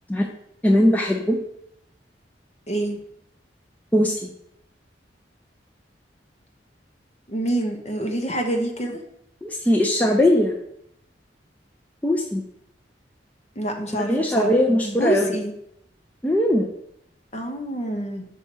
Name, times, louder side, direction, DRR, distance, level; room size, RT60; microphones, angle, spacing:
voice 1, 0.6-1.4 3.9-4.3 9.4-10.5 12.0-12.4 14.0-15.3 16.2-16.7, left 1 dB, 10° left, 1 dB, 0.6 m, -20 dB
voice 2, 2.7-3.0 7.3-9.0 13.6-14.5 14.8-15.5 17.3-18.2, right 1 dB, 40° left, 3 dB, 1.0 m, -26 dB
5.4 x 4.4 x 6.2 m, 0.76 s
head